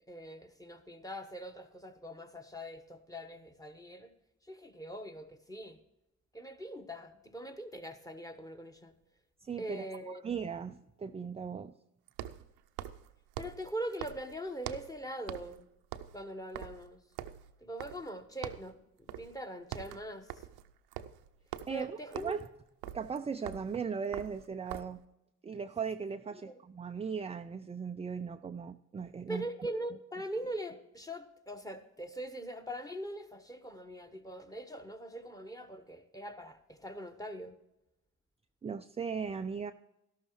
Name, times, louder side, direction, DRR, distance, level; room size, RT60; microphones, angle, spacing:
voice 1, 0.0-4.1 4.4-5.8 6.3-8.9 9.6-10.2 13.4-15.7 16.1-17.0 17.6-18.8 19.2-20.4 21.7-22.3 26.4-26.5 29.3-37.5, right 1 dB, 10° left, 6 dB, 1.3 m, -42 dB
sound 1, 8.8-8.9 12.1-15.0 15.3-15.6 15.8-18.2 18.4-18.7 19.1-19.4 19.6-25.0, right 12 dB, 70° right, 0.7 m, -44 dB
voice 2, 9.4-11.7 21.7-22.4 22.9-25.0 25.4-29.5 38.6-39.7, right 6 dB, 15° right, 9 dB, 0.4 m, -38 dB
12.5 x 12.0 x 3.2 m, 0.88 s
hypercardioid pair, 55°, 40 cm